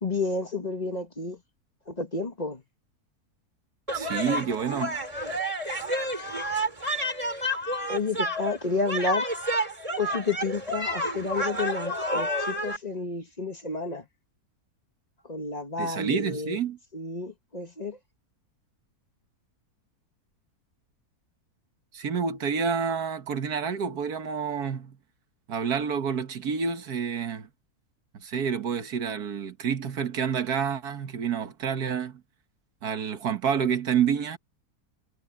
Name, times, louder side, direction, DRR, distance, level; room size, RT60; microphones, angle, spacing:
voice 1, 0.0-1.4 1.9-2.6 7.9-9.3 10.0-14.0 15.3-16.6 16.9-18.0, left 3 dB, 30° left, 1.5 m, -30 dB
sound 1, 3.9-12.8, equal, 20° right, 3.7 m, -30 dB
voice 2, 3.9-5.0 15.8-16.8 21.9-25.0 25.5-27.5 28.2-32.2 32.8-34.4, right 7 dB, 85° right, 1.9 m, -28 dB
omnidirectional pair, 1.6 m